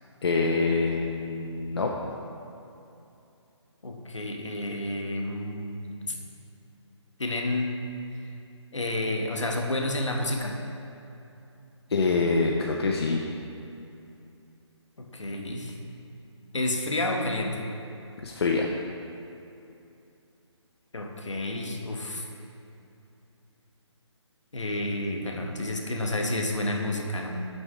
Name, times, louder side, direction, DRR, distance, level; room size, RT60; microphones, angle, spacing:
voice 1, 0.2-1.9 11.9-13.2 18.2-18.7, left 4 dB, 60° left, 0 dB, 0.5 m, -25 dB
voice 2, 3.8-6.2 7.2-7.8 8.7-10.6 15.0-15.7 16.5-17.6 20.9-22.2 24.5-27.3, left 1 dB, 80° left, 2 dB, 0.9 m, -30 dB
6.2 x 5.2 x 3.6 m, 2.8 s
figure-of-eight pair, 145°, 15 cm